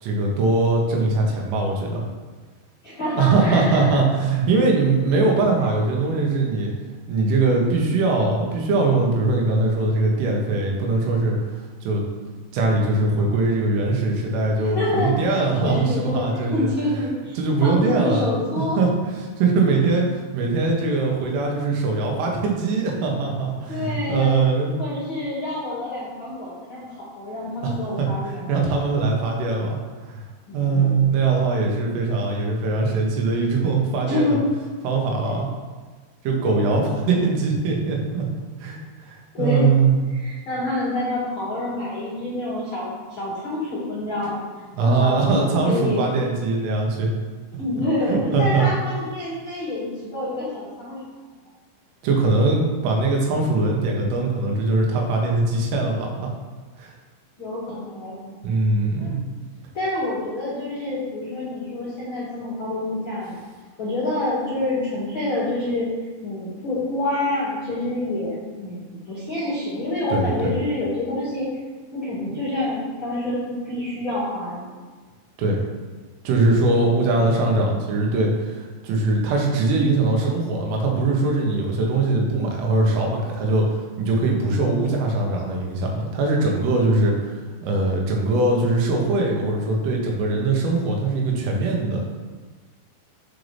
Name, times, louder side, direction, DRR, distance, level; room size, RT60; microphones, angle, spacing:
voice 1, 0.0-2.0 3.1-6.7 7.1-11.4 11.8-12.0 12.5-16.7 17.4-18.9 19.2-24.8 27.6-29.8 30.1-30.2 30.5-34.4 34.8-35.5 36.2-38.3 38.6-40.1 44.8-47.1 48.1-48.7 52.0-56.3 56.8-56.9 58.4-59.2 70.1-70.6 75.4-75.6 76.3-92.1, right 3 dB, 75° right, 0 dB, 3.7 m, -21 dB
voice 2, 2.8-4.0 14.6-18.8 23.7-24.3 24.8-28.5 30.5-31.1 34.0-34.4 36.6-37.0 39.3-39.7 40.1-44.4 44.8-46.0 47.6-51.0 57.4-58.4 59.0-59.1 59.7-63.4 63.8-65.9 66.2-71.5 71.9-74.7, left 2 dB, 55° left, -9 dB, 1.4 m, -27 dB
8.2 x 7.7 x 3.5 m, 1.4 s
omnidirectional pair, 5.9 m